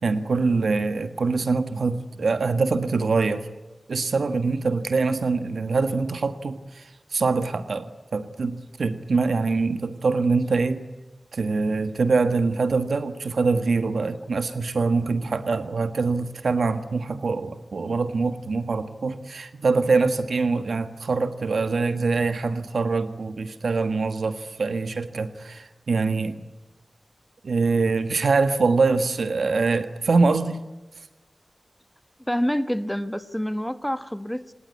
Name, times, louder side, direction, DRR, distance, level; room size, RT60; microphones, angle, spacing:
voice 1, 0.0-3.5 3.9-10.8 11.3-26.4 27.4-30.6, right 4 dB, 80° right, 10 dB, 1.5 m, -24 dB
voice 2, 32.3-34.5, equal, 5° left, 12 dB, 1.5 m, -27 dB
27.0 x 20.0 x 9.6 m, 1.1 s
wide cardioid pair, 85°, 0 cm